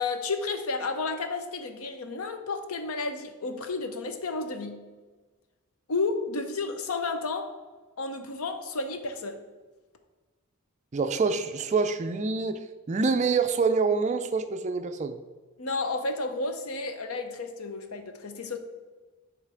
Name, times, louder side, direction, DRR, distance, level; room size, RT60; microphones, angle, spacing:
voice 1, 0.0-4.9 5.9-7.5 8.0-9.5 15.6-18.6, left 3 dB, 80° left, 7 dB, 0.8 m, -32 dB
voice 2, 10.9-15.2, right 4 dB, 30° right, 8 dB, 0.3 m, -26 dB
9.7 x 3.3 x 5.0 m, 1.3 s
head